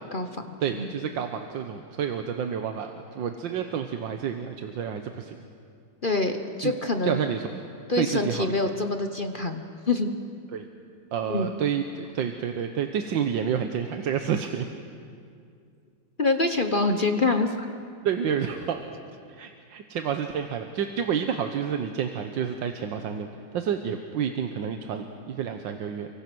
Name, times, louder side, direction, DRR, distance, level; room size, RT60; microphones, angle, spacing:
voice 1, 0.1-0.9 6.0-7.2 7.9-10.1 11.3-11.5 16.2-17.5, left 3 dB, 35° left, 6 dB, 0.9 m, -26 dB
voice 2, 0.6-5.4 6.6-6.7 7.0-7.5 8.0-8.5 10.5-10.7 11.1-14.7 18.0-18.9 19.3-23.3 23.5-26.1, right 8 dB, 75° right, 6 dB, 1.7 m, -29 dB
29.5 x 23.5 x 6.2 m, 2.3 s
omnidirectional pair, 2.1 m